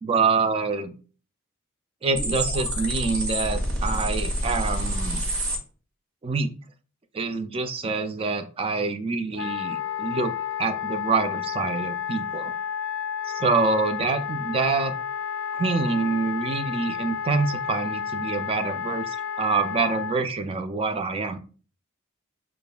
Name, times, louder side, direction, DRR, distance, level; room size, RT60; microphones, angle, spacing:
voice 1, 0.0-0.9 2.0-5.2 6.2-6.5 7.1-10.3 10.6-12.5 13.3-14.9 15.5-21.4, right 4 dB, 30° right, 9 dB, 0.3 m, -26 dB
sound 1, 2.1-5.6, right 1 dB, 85° right, 1.1 m, -27 dB
Wind instrument woodwind instrument, 9.4-20.2, left 8 dB, 70° left, 0.3 m, -31 dB
6.6 x 2.5 x 2.3 m, 0.39 s
head